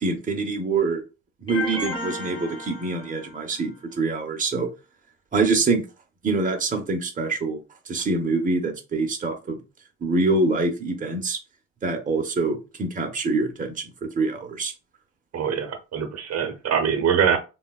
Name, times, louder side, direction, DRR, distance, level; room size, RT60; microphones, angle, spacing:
voice 1, 0.0-1.0 1.4-4.7 5.3-5.8 6.2-7.6 7.9-9.6 10.0-11.4 11.8-14.7, right 3 dB, 25° right, 4 dB, 0.7 m, -25 dB
sound 1, 1.5-3.6, left 1 dB, 15° left, 0.9 m, -33 dB
voice 2, 15.3-17.4, right 7 dB, 60° right, 5 dB, 0.8 m, -23 dB
3.7 x 2.2 x 2.3 m, 0.30 s
cardioid pair, 90°, 30 cm